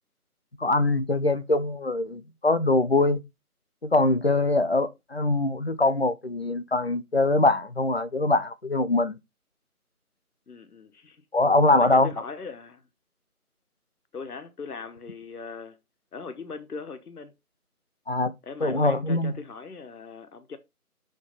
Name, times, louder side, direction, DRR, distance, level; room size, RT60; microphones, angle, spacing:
voice 1, 0.6-3.2 3.8-9.2 11.3-12.1 18.1-18.3 18.6-19.4, left 2 dB, 45° left, 0.5 m, -23 dB
voice 2, 10.5-11.2 11.7-12.8 14.1-15.8 16.1-17.3 18.4-20.6, left 5 dB, 75° left, 1.1 m, -40 dB
6.4 x 3.2 x 5.3 m
figure-of-eight pair, 170°, 45 cm